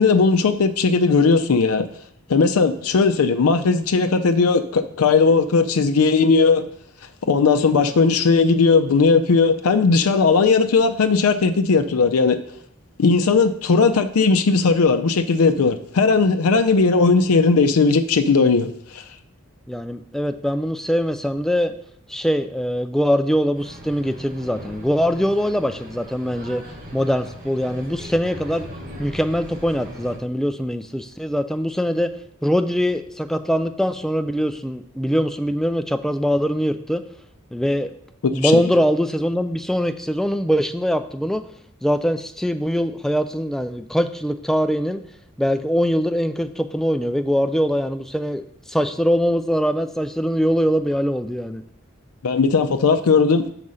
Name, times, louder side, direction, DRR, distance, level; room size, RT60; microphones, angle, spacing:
voice 1, 0.0-1.8 2.3-6.7 7.3-12.4 13.0-19.0 38.2-38.6 52.2-53.5, left 4 dB, 85° left, 8 dB, 0.5 m, -17 dB
voice 2, 19.7-21.7 22.1-26.6 26.9-28.7 29.0-32.1 32.4-37.0 37.5-37.9 38.3-41.4 41.8-45.0 45.4-48.4 48.7-51.6, equal, ahead, 9 dB, 0.3 m, -22 dB
sound 1, 23.5-30.2, equal, 40° right, 1.4 m, -39 dB
6.3 x 4.9 x 5.5 m, 0.67 s
head